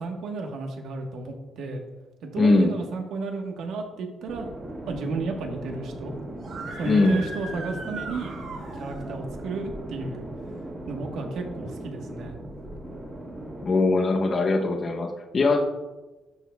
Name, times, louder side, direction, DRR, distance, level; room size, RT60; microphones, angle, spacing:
voice 1, 0.0-1.8 2.2-4.5 4.9-6.2 6.8-8.3 8.7-10.3 10.9-12.4, right 3 dB, 90° right, 3 dB, 1.2 m, -32 dB
voice 2, 2.4-2.7 6.8-7.2 13.6-15.6, left 3 dB, 40° left, 1 dB, 0.8 m, -21 dB
sound 1, 4.3-13.7, right 1 dB, 20° right, 1.7 m, -38 dB
Screaming, 6.4-9.2, right 3 dB, 75° right, 2.5 m, -39 dB
12.0 x 6.6 x 2.3 m, 1.1 s
cardioid pair, 145°, 0 cm